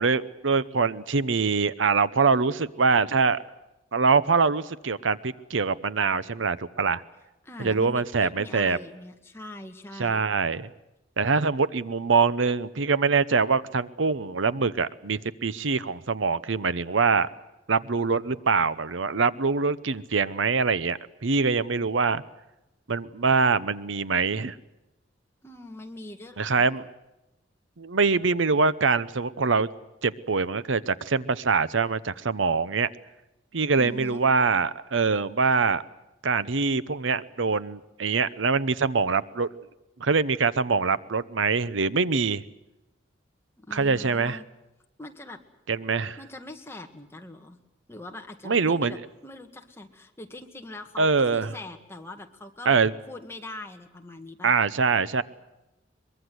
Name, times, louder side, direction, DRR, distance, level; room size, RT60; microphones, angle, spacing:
voice 1, 0.0-3.4 3.9-7.0 7.6-8.8 10.0-10.7 11.2-17.3 17.7-22.2 22.9-24.6 26.4-26.9 27.8-29.7 30.0-32.9 33.5-35.8 36.2-39.5 40.0-42.4 43.7-44.4 45.7-46.2 48.4-49.0 51.0-51.5 52.7-52.9 54.4-55.2, right 4 dB, 90° right, 16 dB, 0.8 m, -24 dB
voice 2, 7.4-10.2 25.4-26.7 33.8-34.2 43.6-44.4 45.0-45.4 46.2-47.6 47.9-52.8 53.1-54.5, left 2 dB, 15° left, 4 dB, 1.8 m, -42 dB
23.0 x 22.5 x 7.9 m, 0.95 s
head